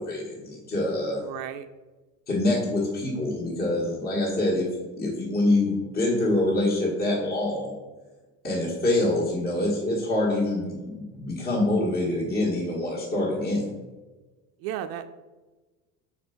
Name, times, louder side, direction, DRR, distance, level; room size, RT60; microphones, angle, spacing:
voice 1, 0.0-1.2 2.3-4.7 5.0-7.8 8.4-13.7, left 1 dB, 25° left, -4 dB, 1.3 m, -25 dB
voice 2, 1.2-1.7 14.6-15.1, right 11 dB, 80° right, 9 dB, 0.5 m, -33 dB
4.4 x 4.2 x 5.5 m, 1.2 s
cardioid pair, 155°, 34 cm